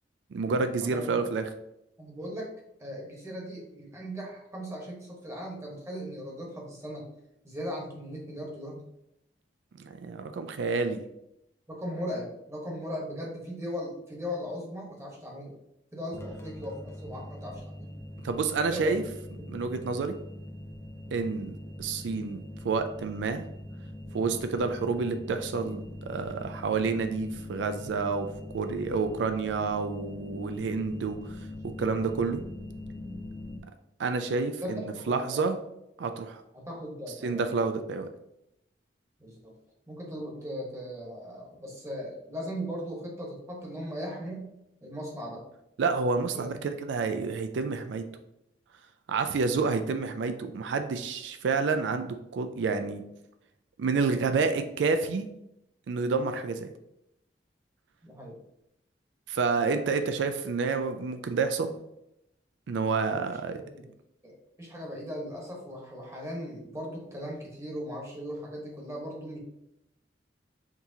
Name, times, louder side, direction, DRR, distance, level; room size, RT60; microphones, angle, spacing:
voice 1, 0.3-1.5 9.8-11.0 18.2-19.0 19.5-20.1 21.1-23.5 24.1-25.8 26.1-28.3 28.5-31.2 31.8-32.4 34.0-35.6 36.0-36.4 37.2-38.1 45.8-48.0 49.1-53.0 53.8-55.3 55.9-56.7 59.3-61.8 62.7-63.6, right 4 dB, 85° right, 8 dB, 0.4 m, -29 dB
voice 2, 0.8-1.2 2.0-2.5 2.8-7.0 7.4-8.8 11.7-15.5 15.9-17.9 18.7-18.9 34.6-35.5 36.5-37.5 39.2-39.5 39.9-44.5 44.8-45.4 46.3-46.5 58.0-58.4 63.1-63.8 64.2-69.4, equal, 15° right, -2 dB, 1.1 m, -38 dB
sound 1, 16.1-33.6, left 1 dB, 15° left, 0.5 m, -42 dB
5.8 x 3.0 x 2.7 m, 0.83 s
head